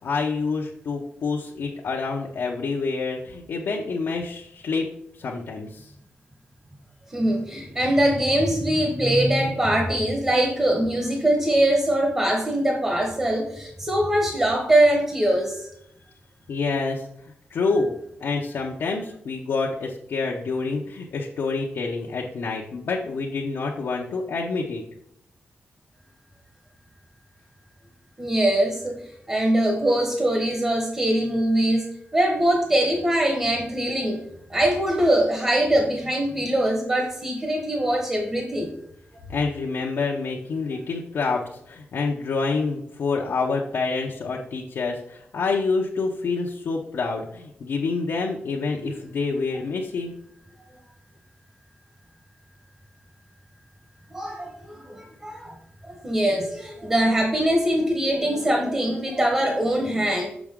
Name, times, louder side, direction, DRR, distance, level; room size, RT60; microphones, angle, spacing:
voice 1, 0.0-4.9 5.2-5.9 16.5-17.1 17.5-17.9 18.2-24.8 39.3-50.1, left 4 dB, 85° left, -3 dB, 0.8 m, -27 dB
voice 2, 7.1-15.7 28.2-29.0 29.3-31.9 32.1-34.2 34.5-38.7 48.8-48.9 54.1-55.6 55.8-60.3, right 1 dB, 25° right, 1 dB, 1.2 m, -22 dB
6.1 x 5.9 x 3.6 m, 0.72 s
wide cardioid pair, 115°, 4 cm